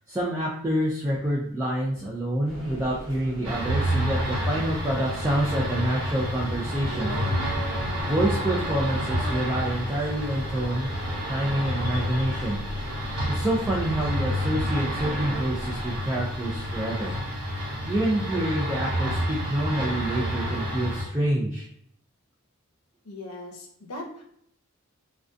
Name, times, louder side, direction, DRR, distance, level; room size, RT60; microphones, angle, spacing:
voice 1, 0.1-7.1 8.1-10.9 11.3-12.6 13.3-17.1 17.8-21.7, right 1 dB, 10° right, -5 dB, 0.3 m, -27 dB
sound 1, 2.4-17.2, equal, 35° left, 1.0 m, -40 dB
sound 2, 3.4-21.0, equal, 75° right, 0.9 m, -29 dB
voice 2, 23.0-24.2, left 1 dB, 80° left, 1 dB, 0.6 m, -39 dB
2.3 x 2.2 x 2.5 m, 0.69 s
head